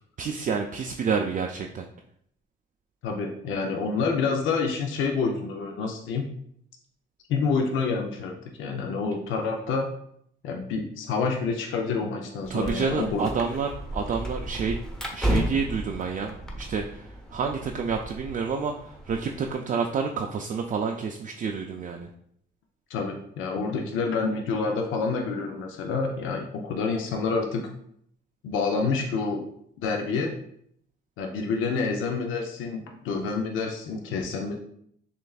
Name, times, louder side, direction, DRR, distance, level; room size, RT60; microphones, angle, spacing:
voice 1, 0.2-1.9 12.5-14.8 15.1-22.1, right 5 dB, 40° right, 2 dB, 0.4 m, -29 dB
voice 2, 3.0-6.3 7.3-9.9 10.4-13.3 22.9-27.6 28.4-29.4 29.8-30.4 31.2-34.6, left 4 dB, 85° left, 2 dB, 0.6 m, -28 dB
sound 1, 12.4-19.5, equal, 5° left, 0.8 m, -34 dB
6.5 x 2.5 x 2.3 m, 0.70 s
cardioid pair, 90°, 20 cm